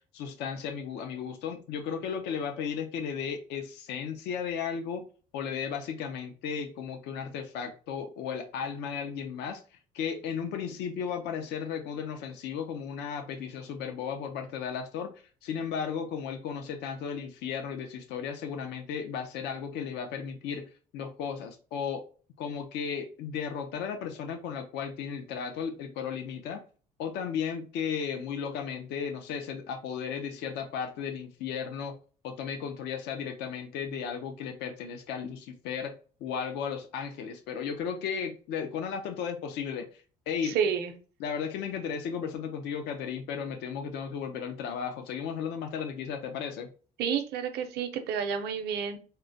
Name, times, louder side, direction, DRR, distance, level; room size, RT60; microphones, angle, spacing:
voice 1, 0.1-5.0 5.3-9.6 9.9-15.1 15.4-20.6 20.9-22.0 22.4-26.6 27.0-31.9 32.2-35.9 36.2-39.9 40.3-40.6 41.2-46.7, left 7 dB, 85° left, 6 dB, 0.5 m, -35 dB
voice 2, 40.4-40.9 47.0-49.0, right 7 dB, 75° right, 7 dB, 0.6 m, -30 dB
3.7 x 2.1 x 2.6 m, 0.38 s
cardioid pair, 110°, 17 cm